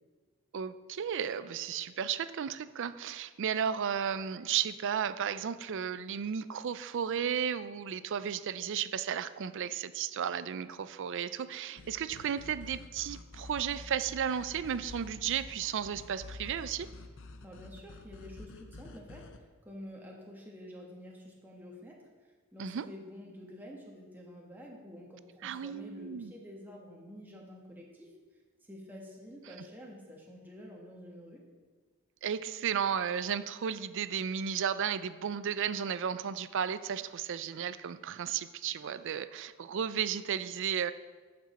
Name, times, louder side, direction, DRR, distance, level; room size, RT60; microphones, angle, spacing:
voice 1, 0.5-16.9 22.6-22.9 25.4-26.3 32.2-40.9, right 8 dB, 60° right, 14 dB, 0.4 m, -34 dB
sound 1, 11.8-19.4, left 3 dB, 60° left, 0.7 m, -48 dB
voice 2, 17.4-19.2 19.6-22.0 22.5-28.1 28.6-31.4, equal, 10° right, -2 dB, 1.2 m, -48 dB
14.5 x 6.1 x 4.2 m, 1.4 s
head